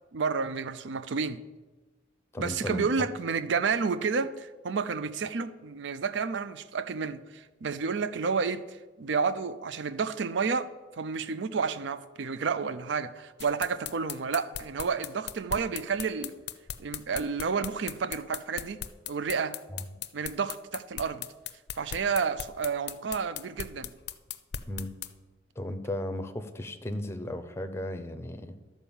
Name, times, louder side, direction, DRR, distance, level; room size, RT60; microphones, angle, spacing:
voice 1, 0.1-1.4 2.4-10.7 11.0-16.3 16.8-18.8 19.1-19.6 20.1-21.3 21.8-23.9, right 5 dB, 70° right, 14 dB, 0.5 m, -30 dB
voice 2, 2.3-2.9 19.7-19.9 24.7-24.9 25.6-28.6, left 1 dB, 15° left, 9 dB, 0.6 m, -35 dB
sound 1, 13.4-25.1, left 10 dB, 60° left, 0.5 m, -37 dB
11.5 x 4.6 x 7.1 m, 1.2 s
head